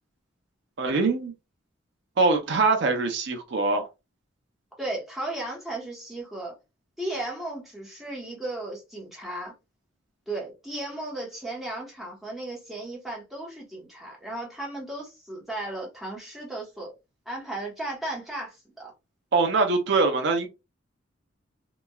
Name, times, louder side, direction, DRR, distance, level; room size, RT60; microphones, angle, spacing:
voice 1, 0.8-1.3 2.2-3.9 19.3-20.5, right 3 dB, 55° right, 0.5 m, -23 dB
voice 2, 4.8-6.6 7.0-9.5 10.3-16.9 17.3-18.9, right 2 dB, ahead, 0.9 m, -35 dB
3.0 x 2.3 x 2.2 m
head